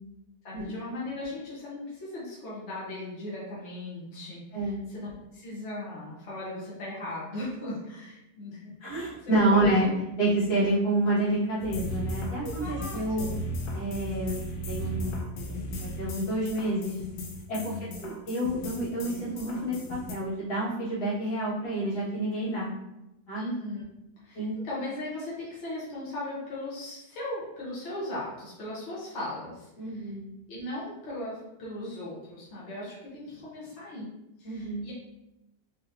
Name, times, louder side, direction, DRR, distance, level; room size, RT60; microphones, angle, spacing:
voice 1, 0.4-9.9 12.4-13.4 17.6-18.1 23.3-23.8 24.2-30.1 30.5-34.1 34.4-34.9, left 1 dB, 50° left, -7 dB, 1.4 m, -38 dB
voice 2, 4.5-4.8 8.8-9.9 10.2-13.3 13.7-17.0 17.5-17.6 18.0-22.7 23.3-23.4 24.4-24.6 29.8-30.3 34.4-34.9, right 1 dB, 85° left, -10 dB, 2.3 m, -28 dB
sound 1, 11.6-20.1, equal, 70° left, 1.0 m, -36 dB
3.9 x 3.4 x 2.7 m, 0.93 s
omnidirectional pair, 1.7 m